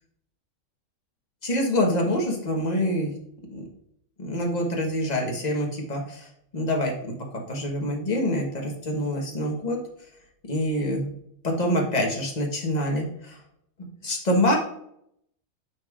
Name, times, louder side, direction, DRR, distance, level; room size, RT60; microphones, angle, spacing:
voice 1, 1.4-3.2 3.5-3.6 4.2-6.3 6.5-7.1 7.5-9.8 10.5-11.1 11.4-13.4 13.8-14.6, left 1 dB, 30° left, 0 dB, 1.2 m, -26 dB
7.2 x 5.3 x 2.5 m, 0.72 s
omnidirectional pair, 1.5 m